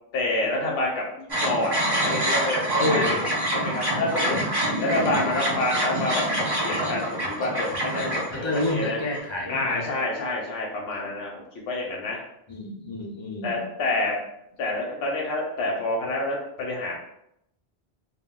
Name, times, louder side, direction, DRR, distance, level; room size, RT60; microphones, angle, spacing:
voice 1, 0.1-3.0 3.5-4.4 4.8-9.0 9.5-12.2 13.4-14.2 14.6-16.9, left 2 dB, 85° left, -2 dB, 0.8 m, -28 dB
sound 1, 1.3-9.2, right 1 dB, 30° right, 0.6 m, -26 dB
voice 2, 2.8-3.2 8.3-9.9 12.5-13.6, left 2 dB, 45° left, -1 dB, 0.3 m, -29 dB
2.2 x 2.0 x 3.5 m, 0.79 s
omnidirectional pair, 1.1 m